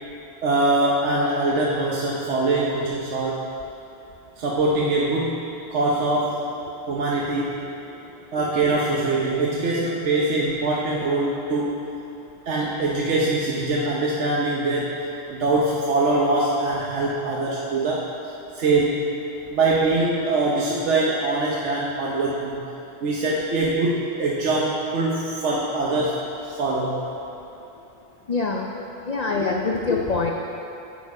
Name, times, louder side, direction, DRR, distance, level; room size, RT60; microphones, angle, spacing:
voice 1, 0.4-3.4 4.4-5.4 5.7-6.4 6.9-7.6 8.3-11.8 12.5-15.0 15.3-18.0 18.5-19.0 19.5-22.5 23.0-27.0, right 2 dB, 70° right, -4 dB, 1.1 m, -23 dB
voice 2, 28.3-28.7 29.1-30.3, left 4 dB, 50° left, 0 dB, 0.5 m, -24 dB
8.9 x 7.3 x 4.8 m, 2.8 s
omnidirectional pair, 1.3 m